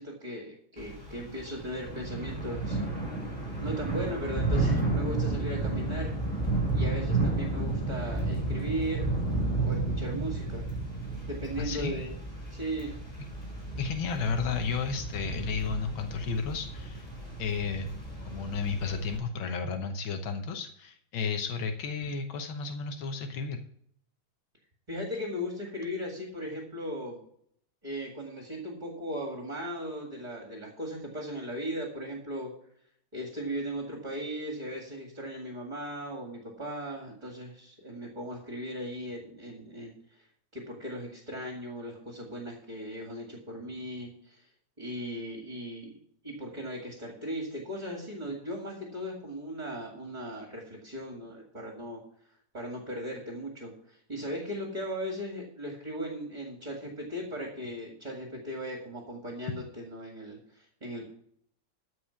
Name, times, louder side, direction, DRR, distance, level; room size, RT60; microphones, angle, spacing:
voice 1, 0.0-2.8 3.6-6.1 6.7-9.1 9.6-10.6 11.3-12.1 12.5-13.0 24.9-27.2 27.8-32.5 33.1-40.2 40.5-44.5 44.8-46.0 46.2-52.0 52.5-61.1, equal, 20° right, 0 dB, 2.1 m, -37 dB
Thunder / Rain, 0.8-19.2, right 2 dB, 20° left, 6.0 m, -32 dB
voice 2, 11.6-11.9 13.8-17.1 17.4-18.0 18.3-23.6, left 5 dB, 85° left, 5 dB, 1.8 m, -33 dB
13.5 x 4.9 x 6.9 m, 0.67 s
omnidirectional pair, 2.2 m